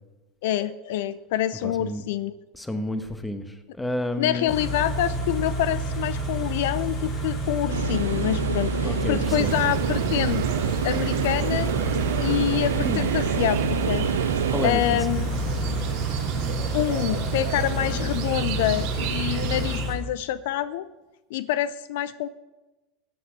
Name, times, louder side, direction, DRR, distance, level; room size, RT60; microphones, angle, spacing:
voice 1, 0.4-2.4 4.2-10.5 10.8-11.7 12.2-14.1 14.6-15.4 16.7-20.8 21.3-22.3, left 12 dB, 70° left, 16 dB, 0.4 m, -26 dB
voice 2, 1.6-2.0 2.5-4.5 8.8-9.5 12.8-13.1 14.5-15.0, left 1 dB, 10° left, 9 dB, 1.4 m, -30 dB
Car / Idling, 4.5-19.9, equal, 50° left, 4.1 m, -29 dB
sound 1, 7.7-14.7, right 8 dB, 80° right, 0.3 m, -28 dB
sound 2, 9.2-19.9, right 9 dB, 60° right, 1.3 m, -31 dB
14.0 x 8.4 x 5.9 m, 1.1 s
hypercardioid pair, 85°, 0 cm